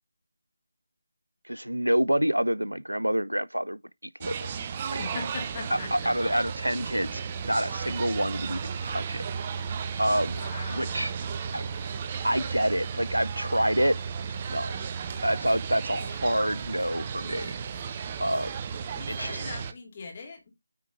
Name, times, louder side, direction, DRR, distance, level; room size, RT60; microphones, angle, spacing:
voice 1, 1.5-4.5 4.9-5.0 5.7-9.2 10.0-10.3 10.7-11.1 11.5-11.7 12.2-14.0 14.5-14.8 15.2-17.5 18.2-18.5 19.1-19.5, equal, 85° right, 0.5 m, -27 dB
sound 1, 4.2-19.7, right 6 dB, 25° right, 0.6 m, -34 dB
voice 2, 5.0-5.9 10.3-11.0 18.9-20.5, left 4 dB, 30° left, 2.4 m, -40 dB
9.5 x 4.6 x 3.7 m
figure-of-eight pair, 160°, 0 cm